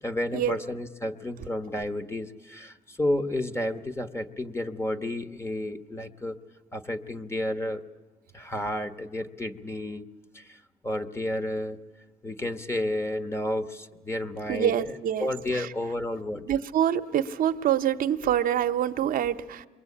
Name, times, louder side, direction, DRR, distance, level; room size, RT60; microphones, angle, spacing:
voice 1, 0.0-6.4 6.7-7.8 8.3-10.1 10.3-11.8 12.2-16.6, left 1 dB, 15° left, 11 dB, 1.3 m, -31 dB
voice 2, 14.5-15.7 16.5-19.7, right 10 dB, 55° right, 7 dB, 0.9 m, -26 dB
27.5 x 22.0 x 8.5 m, 1.2 s
cardioid pair, 110°, 17 cm